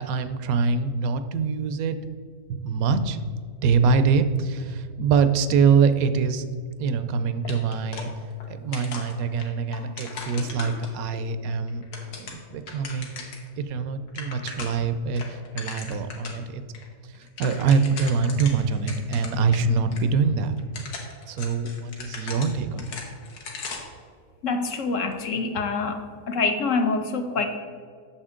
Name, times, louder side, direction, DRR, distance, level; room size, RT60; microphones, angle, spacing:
voice 1, 0.0-2.0 2.5-3.3 3.6-6.4 6.8-8.1 8.5-13.2 13.6-16.8 17.0-20.8 21.3-23.0 25.4-25.5, right 5 dB, 75° right, 10 dB, 1.0 m, -24 dB
sound 1, 7.4-8.5 8.7-11.2 11.7-13.5 13.8-13.9 14.1-14.9 15.2-16.4 16.7-16.8 17.1-19.6 19.9-20.0 20.6-24.0, left 4 dB, 85° left, 1.7 m, -38 dB
voice 2, 24.4-27.5, left 4 dB, 60° left, 6 dB, 1.0 m, -26 dB
8.7 x 6.8 x 3.7 m, 2.1 s
omnidirectional pair, 1.6 m